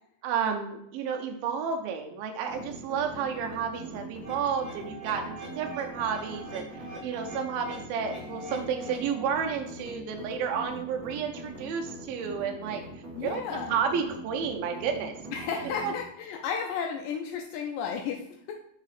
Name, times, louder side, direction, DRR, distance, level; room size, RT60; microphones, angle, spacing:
voice 1, 0.2-12.8 13.2-13.4 13.7-15.1 15.8-15.9, right 7 dB, 80° right, 3 dB, 2.5 m, -31 dB
sound 1, 2.5-15.9, right 1 dB, 30° right, 1.7 m, -42 dB
sound 2, 4.2-9.2, right 2 dB, 20° left, 0.4 m, -44 dB
voice 2, 13.1-13.8 15.3-18.2, left 7 dB, 85° left, 2 dB, 1.9 m, -33 dB
6.5 x 4.0 x 4.1 m, 0.75 s
omnidirectional pair, 4.5 m